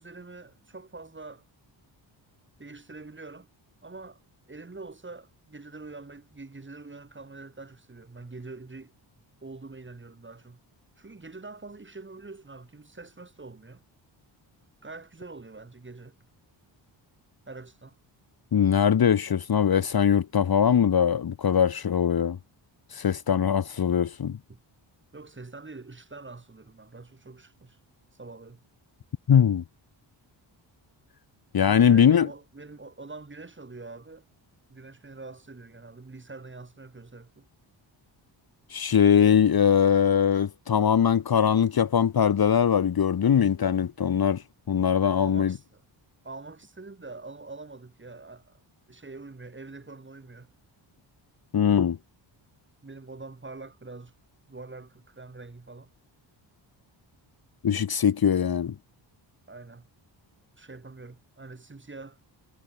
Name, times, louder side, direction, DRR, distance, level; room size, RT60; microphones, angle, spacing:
voice 1, 0.0-1.4 2.6-3.5 3.8-4.2 4.5-8.9 9.4-10.6 11.0-13.8 14.8-16.2 17.5-18.0 24.5-24.6 25.1-27.8 28.2-28.6 31.6-34.2 34.7-37.5 45.2-45.8 46.2-48.6 48.9-50.5 52.8-54.1 54.5-55.9 59.5-59.9 60.6-62.2, right 3 dB, 25° right, 6.0 m, -44 dB
voice 2, 18.5-22.4 22.9-24.4 29.3-29.6 31.5-32.3 38.7-44.4 44.7-45.5 51.5-52.0 57.6-58.7, left 8 dB, 50° left, 1.4 m, -21 dB
wide cardioid pair, 110°, 46 cm